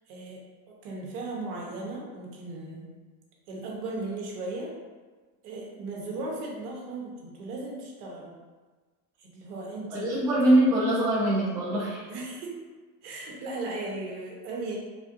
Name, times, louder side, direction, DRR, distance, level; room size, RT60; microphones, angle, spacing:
voice 1, 0.1-2.9 3.5-4.7 5.4-8.4 9.2-10.1 12.1-12.6 13.0-14.8, right 2 dB, 70° right, -1 dB, 1.0 m, -37 dB
voice 2, 9.9-12.0, right 1 dB, 5° right, -8 dB, 0.3 m, -23 dB
3.5 x 2.5 x 2.5 m, 1.4 s
supercardioid pair, 125°, 47 cm